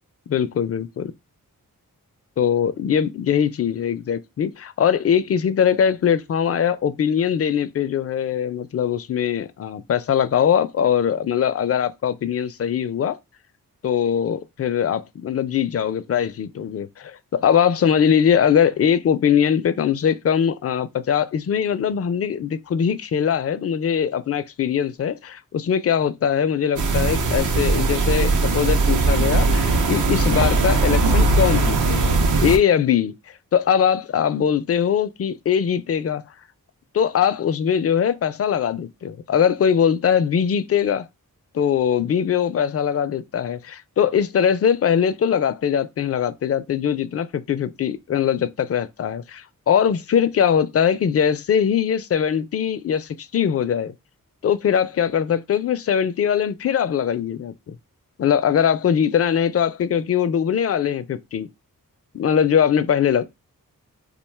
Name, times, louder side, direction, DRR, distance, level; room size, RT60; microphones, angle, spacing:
voice 1, 0.3-1.1 2.4-13.2 13.8-33.1 33.5-36.2 36.9-41.1 41.5-53.9 54.4-57.8 58.2-61.5 62.1-63.2, left 8 dB, 40° left, 0.4 m, -21 dB
sound 1, 26.8-32.6, right 3 dB, 60° right, 0.6 m, -19 dB
2.5 x 2.2 x 3.2 m
cardioid pair, 45°, 35 cm